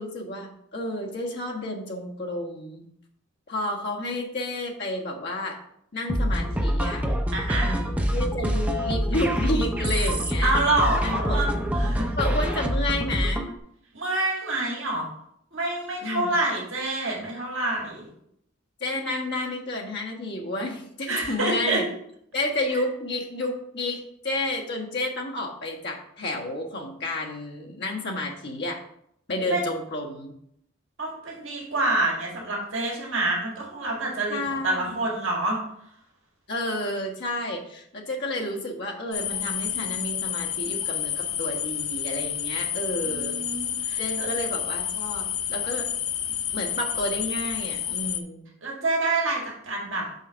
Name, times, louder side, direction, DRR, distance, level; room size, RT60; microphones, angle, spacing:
voice 1, 0.0-2.9 3.5-5.6 5.9-7.0 7.5-10.6 11.0-11.4 12.2-13.5 16.0-16.3 18.8-21.8 22.3-28.8 29.3-30.3 34.3-35.1 36.5-43.4 44.0-45.9 46.5-48.4, left 1 dB, 50° left, -1 dB, 1.4 m, -31 dB
sound 1, 6.1-13.5, equal, 5° right, 0.5 m, -25 dB
voice 2, 7.3-7.8 10.0-10.1 10.4-12.1 13.9-15.1 15.5-18.1 21.1-21.8 29.5-29.6 31.0-35.6 43.1-44.3 48.6-50.1, right 2 dB, 60° right, -2 dB, 1.9 m, -27 dB
sound 2, 39.1-48.2, left 10 dB, 85° left, 0.6 m, -30 dB
5.7 x 4.1 x 6.2 m, 0.72 s
head